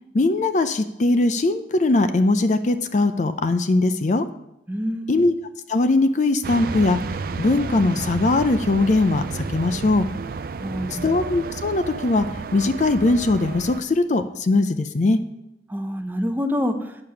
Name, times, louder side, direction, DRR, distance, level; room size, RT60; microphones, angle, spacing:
voice 1, 0.1-4.3 5.1-5.3 5.7-7.0 7.4-10.1 10.9-12.3 12.5-15.2, left 2 dB, 40° left, 10 dB, 0.4 m, -20 dB
voice 2, 4.7-5.3 10.6-11.1 15.7-16.7, equal, 10° right, 5 dB, 0.7 m, -26 dB
sound 1, 6.4-13.8, right 4 dB, 55° right, 0.4 m, -32 dB
8.8 x 6.6 x 5.7 m, 0.85 s
head